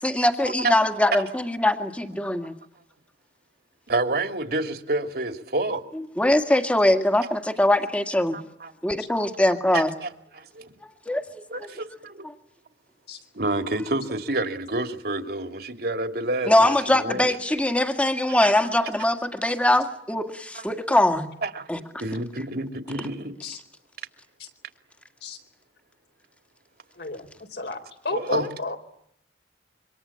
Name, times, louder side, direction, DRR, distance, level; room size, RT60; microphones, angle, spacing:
voice 1, 0.0-2.5 6.2-8.4 8.8-9.9 11.1-11.7 16.5-21.3 21.7-21.8, left 1 dB, 10° left, 1.9 m, -22 dB
voice 2, 3.9-5.9 8.3-8.7 9.7-10.6 11.5-12.2 13.3-17.2 18.4-18.5 18.8-18.9 20.5-20.7 21.4-21.7 22.0-23.4 28.1-28.5, right 2 dB, 60° right, 2.8 m, -29 dB
voice 3, 27.0-28.8, left 3 dB, 65° left, 4.2 m, -32 dB
27.0 x 25.0 x 8.7 m
head